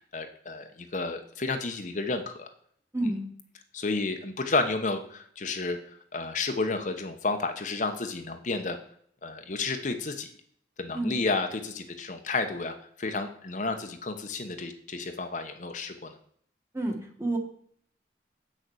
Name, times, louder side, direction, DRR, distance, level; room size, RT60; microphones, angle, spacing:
voice 1, 0.1-2.5 3.0-3.1 3.7-5.8 6.1-8.8 9.2-10.3 10.8-16.1, left 3 dB, 40° left, 6 dB, 0.9 m, -31 dB
voice 2, 2.9-3.2 10.9-11.2 16.7-17.4, right 1 dB, 15° right, 2 dB, 1.5 m, -29 dB
8.2 x 6.6 x 6.2 m, 0.62 s
head